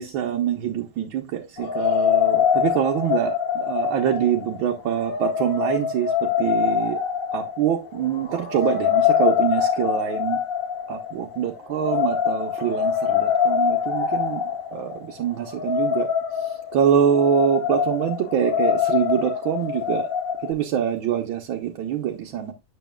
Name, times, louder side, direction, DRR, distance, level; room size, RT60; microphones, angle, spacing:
voice 1, 0.0-7.0 7.3-10.4 10.9-14.4 14.7-16.1 16.7-20.1 20.4-22.5, right 9 dB, 75° right, 1.6 m, -25 dB
sound 1, 1.6-20.5, left 8 dB, 45° left, 1.4 m, -24 dB
9.1 x 6.8 x 2.3 m
omnidirectional pair, 2.3 m